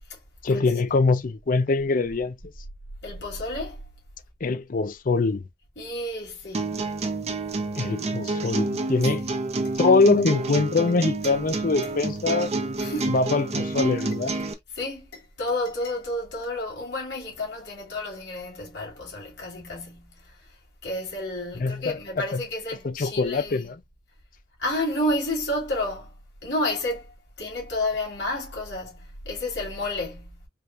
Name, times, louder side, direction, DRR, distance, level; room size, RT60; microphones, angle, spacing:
voice 1, 0.4-2.4 4.4-5.4 7.8-9.2 9.8-12.5 13.1-14.3 21.6-22.0 22.3-22.4 22.8-23.8, left 3 dB, 50° left, 0.5 m, -23 dB
voice 2, 3.0-3.8 5.8-7.0 9.2-9.3 9.6-9.7 11.8-11.9 12.8-13.1 14.7-20.4 20.8-23.7 24.6-26.1 26.4-27.1 27.4-30.5, left 1 dB, 85° left, 2.6 m, -31 dB
sound 1, 6.5-14.5, right 2 dB, 35° right, 0.7 m, -28 dB
4.7 x 2.8 x 2.4 m
head